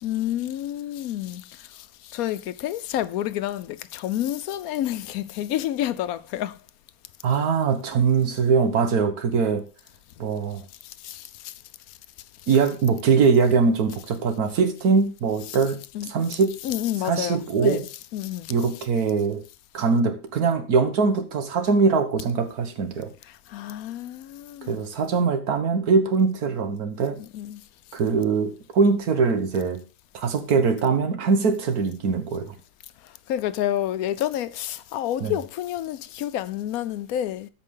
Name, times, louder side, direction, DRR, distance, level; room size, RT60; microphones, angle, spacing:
voice 1, 0.0-6.6 10.8-11.5 15.9-16.1 16.6-17.9 18.1-18.5 23.5-24.8 27.2-27.6 33.0-37.5, left 12 dB, 75° left, 1.0 m, -29 dB
voice 2, 7.2-9.6 10.2-10.6 12.5-16.6 17.0-17.8 18.5-19.4 19.7-23.1 24.7-27.2 27.9-29.8 30.1-32.5 35.2-35.4, right 5 dB, 85° right, 1.7 m, -22 dB
13.0 x 4.9 x 3.7 m
omnidirectional pair, 1.5 m